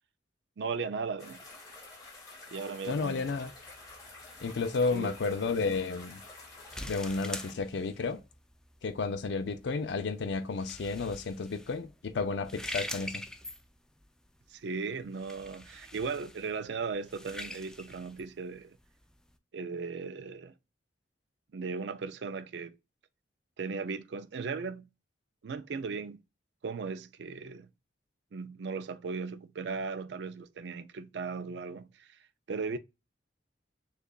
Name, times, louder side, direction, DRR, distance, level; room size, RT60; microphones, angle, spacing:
voice 1, 0.6-1.4 2.5-3.3 4.9-5.1 14.5-18.8 19.5-20.5 21.5-22.8 23.6-24.8 25.4-26.2 26.6-27.7 28.3-32.2 32.5-32.8, right 4 dB, 70° right, 0.4 m, -37 dB
sound 1, 1.2-7.5, left 3 dB, 20° left, 2.0 m, -49 dB
voice 2, 2.9-3.5 4.4-6.2 6.8-8.2 8.8-13.2, left 4 dB, 75° left, 0.5 m, -32 dB
sound 2, 3.2-19.3, left 1 dB, 5° left, 0.3 m, -46 dB
6.5 x 2.3 x 2.3 m
head